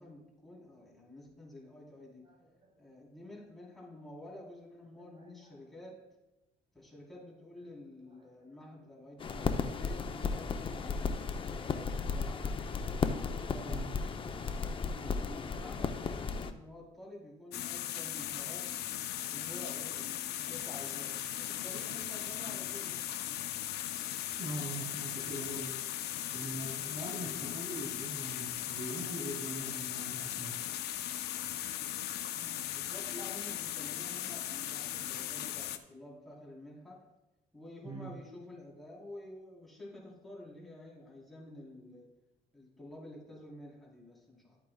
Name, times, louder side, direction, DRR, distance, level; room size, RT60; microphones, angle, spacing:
voice 1, 0.0-2.3 2.8-6.0 6.7-11.2 11.5-12.7 13.5-14.3 14.8-18.8 19.3-23.1 32.3-37.1 37.5-42.1 42.5-44.6, left 1 dB, ahead, -5 dB, 3.6 m, -50 dB
voice 2, 5.0-5.5 8.1-8.2 8.4-8.6 12.6-13.9 24.4-25.8 26.3-30.6 37.8-38.1, right 1 dB, 35° right, -1 dB, 2.3 m, -43 dB
sound 1, 9.2-16.5, left 5 dB, 30° left, 0.6 m, -35 dB
sound 2, 17.5-35.8, left 12 dB, 75° left, 0.6 m, -38 dB
12.5 x 8.7 x 2.3 m, 1.0 s
cardioid pair, 110°, 17 cm